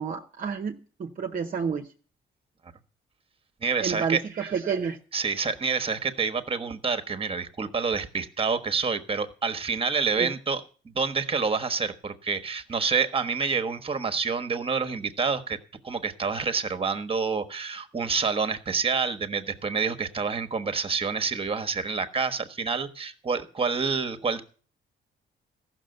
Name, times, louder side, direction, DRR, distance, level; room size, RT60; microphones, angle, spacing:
voice 1, 0.0-1.9 3.8-5.0 10.2-10.3, right 6 dB, 45° right, 0.9 m, -30 dB
voice 2, 3.6-4.2 5.1-15.6 15.8-24.4, right 5 dB, 30° right, 1.2 m, -28 dB
14.5 x 6.2 x 7.8 m
cardioid pair, 90°, 20 cm